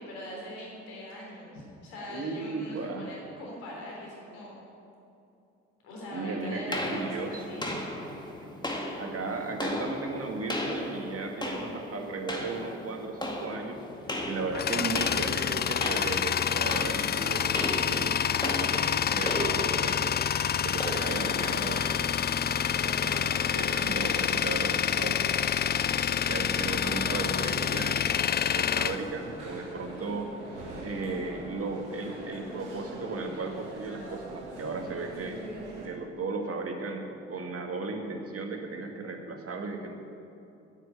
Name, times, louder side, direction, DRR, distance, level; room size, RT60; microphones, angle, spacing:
voice 1, 0.0-4.5 5.8-7.6, left 1 dB, 75° left, -2 dB, 3.6 m, -41 dB
voice 2, 2.1-3.1 6.1-7.6 8.4-8.5 9.0-13.8 14.2-20.1 20.6-22.0 22.7-25.5 26.1-28.1 28.5-30.3 30.8-35.4 35.8-39.9, right 3 dB, 40° right, 3 dB, 2.0 m, -36 dB
sound 1, 6.7-23.1, left 1 dB, 10° left, 2.0 m, -36 dB
Tools, 14.1-29.9, left 8 dB, 30° left, 0.4 m, -28 dB
sound 2, 22.3-35.9, right 2 dB, 90° right, 1.6 m, -43 dB
9.2 x 9.0 x 8.9 m, 2.7 s
hypercardioid pair, 45°, 34 cm